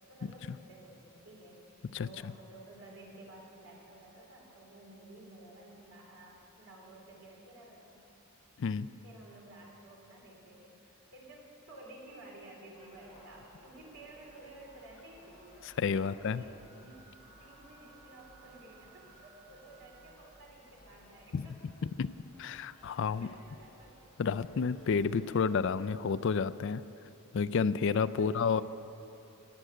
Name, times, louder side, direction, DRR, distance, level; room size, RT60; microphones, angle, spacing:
voice 1, 0.1-1.6 2.0-8.0 9.0-15.5 15.9-21.6 22.8-22.9 23.2-24.1 27.9-28.6, right 1 dB, 75° right, -2 dB, 3.3 m, -53 dB
Gull seagull, 12.7-25.3, equal, 5° left, 3.5 m, -60 dB
sound 1, 13.5-20.1, right 4 dB, 30° right, 3.3 m, -62 dB
voice 2, 15.6-16.4 21.3-21.5 22.0-22.1 22.4-23.3 24.2-26.8 27.3-28.6, left 5 dB, 55° left, 16 dB, 0.4 m, -30 dB
14.5 x 7.7 x 9.9 m, 2.9 s
head